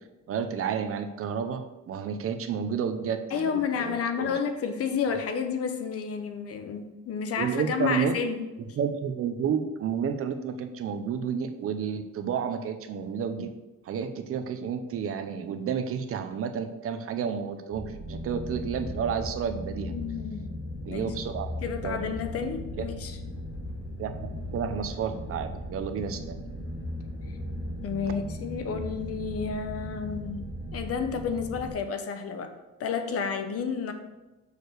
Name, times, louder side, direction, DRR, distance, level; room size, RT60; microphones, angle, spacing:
voice 1, 0.3-4.4 7.4-8.2 8.7-13.5 13.8-19.9 20.8-21.5 21.8-22.0 22.8-22.9 24.0-26.4, right 7 dB, 50° right, 8 dB, 0.7 m, -31 dB
voice 2, 3.3-8.4 19.9-20.5 20.9-21.1 21.6-23.2 27.8-32.5 32.8-33.9, left 6 dB, 50° left, 8 dB, 0.9 m, -31 dB
sound 1, 17.7-31.7, left 1 dB, 35° left, 2.2 m, -37 dB
6.5 x 5.0 x 6.5 m, 1.1 s
cardioid pair, 175°, 30 cm